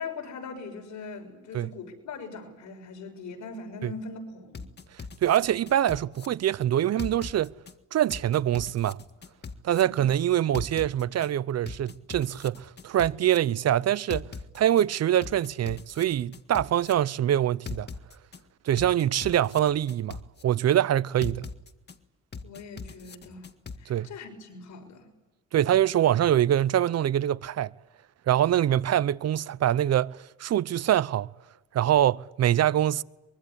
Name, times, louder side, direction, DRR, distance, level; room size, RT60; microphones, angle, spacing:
voice 1, 0.0-4.7 9.8-10.0 22.4-23.5 23.8-25.1, left 4 dB, 70° left, 6.6 m, -41 dB
sound 1, 4.5-6.3 7.0-7.7 8.1-9.8 10.5-11.3 11.7-13.4 14.1-14.8 15.2-16.9 17.7-18.4 18.8-20.4 21.2-22.0 22.3-23.8, left 5 dB, 35° left, 1.8 m, -39 dB
voice 2, 5.2-7.5 7.9-9.0 9.6-14.3 14.5-17.9 18.6-20.2 20.4-21.5 23.9-24.1 25.5-27.7 28.3-31.3 31.7-33.0, right 11 dB, 55° right, 0.8 m, -24 dB
24.0 x 23.5 x 8.4 m
cardioid pair, 90°, 30 cm